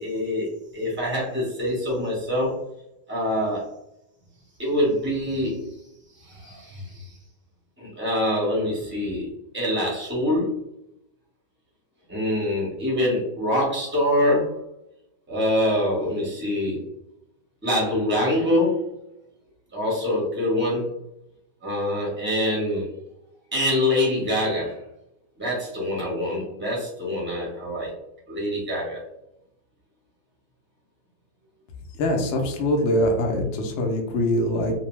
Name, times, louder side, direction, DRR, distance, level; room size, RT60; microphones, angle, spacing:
voice 1, 0.0-2.6 3.1-3.7 4.6-5.7 6.2-7.2 7.8-10.6 12.1-14.6 15.3-16.8 17.6-18.9 19.7-20.9 21.6-22.9 23.5-24.8 25.4-27.9 28.3-29.0, left 1 dB, 10° right, -5 dB, 0.6 m, -25 dB
voice 2, 32.0-34.7, left 1 dB, 85° left, 1 dB, 0.6 m, -23 dB
2.6 x 2.1 x 3.0 m, 0.83 s
omnidirectional pair, 1.8 m